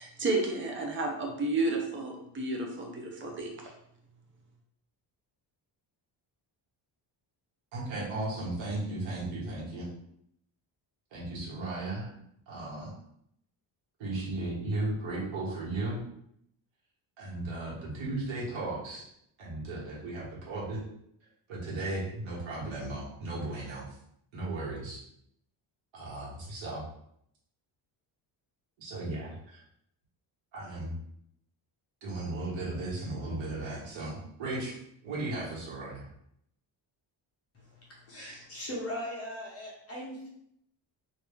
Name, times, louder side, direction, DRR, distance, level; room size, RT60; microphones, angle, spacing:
voice 1, 0.0-3.5, right 2 dB, 25° right, 1 dB, 0.5 m, -31 dB
voice 2, 7.7-9.9 11.1-12.1 12.5-12.9 14.0-16.0 17.2-19.1 19.4-20.8 21.5-23.9 24.3-25.0 25.9-26.8 28.8-29.6 30.5-30.9 32.0-34.8 35.0-36.1, right 2 dB, 80° right, -5 dB, 1.5 m, -35 dB
voice 3, 37.5-40.3, equal, 30° left, -4 dB, 1.0 m, -39 dB
2.9 x 2.6 x 3.5 m, 0.73 s
cardioid pair, 170°, 46 cm